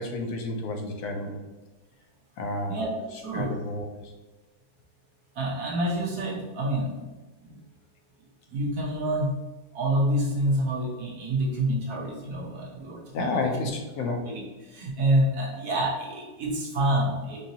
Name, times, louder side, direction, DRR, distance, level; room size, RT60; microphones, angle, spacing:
voice 1, 0.0-1.4 2.4-2.8 3.3-4.1 13.1-14.3, left 2 dB, 80° left, 3 dB, 1.2 m, -30 dB
voice 2, 2.7-3.6 5.4-7.1 7.4-7.6 8.5-9.4 9.7-13.6 14.0-17.5, right 1 dB, 80° right, -1 dB, 1.4 m, -28 dB
4.9 x 2.7 x 2.8 m, 1.2 s
omnidirectional pair, 1.6 m